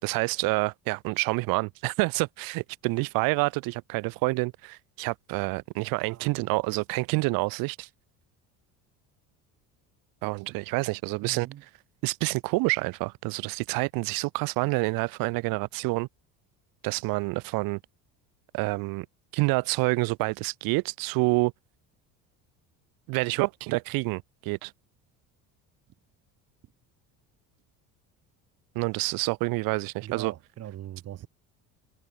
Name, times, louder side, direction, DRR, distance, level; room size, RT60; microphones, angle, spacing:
voice 1, 0.0-7.9 10.2-11.5 12.0-16.1 16.8-17.8 18.5-19.1 19.3-21.5 23.1-24.7 28.7-30.3, right 25 dB, 75° right, 4.6 m, -28 dB
voice 2, 11.2-11.6 30.0-31.3, right 12 dB, 45° right, 4.1 m, -40 dB
cardioid pair, 135°, 34 cm